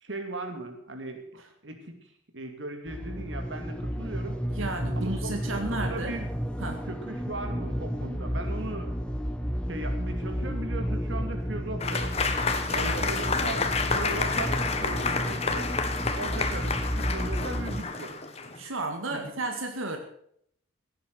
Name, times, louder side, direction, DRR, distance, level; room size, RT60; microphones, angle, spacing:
voice 1, 0.0-1.2 1.6-1.8 2.3-4.4 5.0-6.3 6.9-8.9 9.7-12.1 12.8-15.8 16.1-18.2 19.1-19.4, right 2 dB, 65° right, 5 dB, 2.6 m, -38 dB
sound 1, 2.9-17.8, equal, 5° left, 1.1 m, -32 dB
voice 2, 4.5-6.2 6.6-6.8 12.5-13.0 18.6-20.0, right 2 dB, 90° right, 4 dB, 2.1 m, -33 dB
Applause / Crowd, 11.8-18.6, left 4 dB, 30° left, 1.3 m, -29 dB
17.0 x 9.3 x 6.2 m, 0.66 s
head